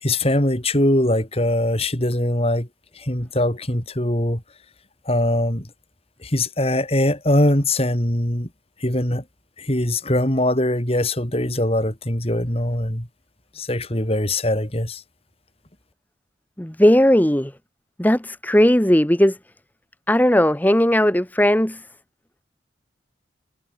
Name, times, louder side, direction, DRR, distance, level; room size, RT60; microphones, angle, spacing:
voice 1, 0.0-2.7 3.0-4.4 5.1-5.7 6.2-8.5 8.8-9.2 9.6-13.1 13.6-15.0, left 1 dB, 35° left, 4.5 m, -21 dB
voice 2, 16.6-17.5 18.0-19.4 20.1-21.8, equal, 10° left, 1.2 m, -17 dB
head